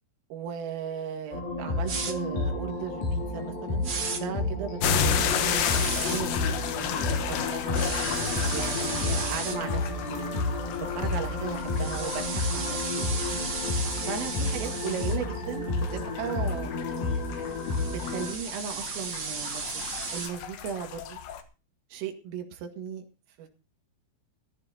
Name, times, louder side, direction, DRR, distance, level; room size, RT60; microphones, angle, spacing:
voice 1, 0.3-8.0 8.5-10.4 10.8-13.1 14.1-16.8 17.8-19.6 20.1-21.2 21.9-23.0 23.4-23.5, right 7 dB, 85° right, 4 dB, 4.6 m, -36 dB
sound 1, 1.3-18.3, left 3 dB, 50° left, 4.2 m, -31 dB
sound 2, 1.9-2.1 3.8-4.2 5.6-6.2 7.7-9.6 11.6-15.2 17.3-20.3, right 4 dB, 45° right, 1.4 m, -35 dB
sound 3, 4.8-21.4, left 7 dB, 70° left, 3.2 m, -33 dB
21.0 x 13.5 x 2.9 m, 0.33 s
omnidirectional pair, 5.8 m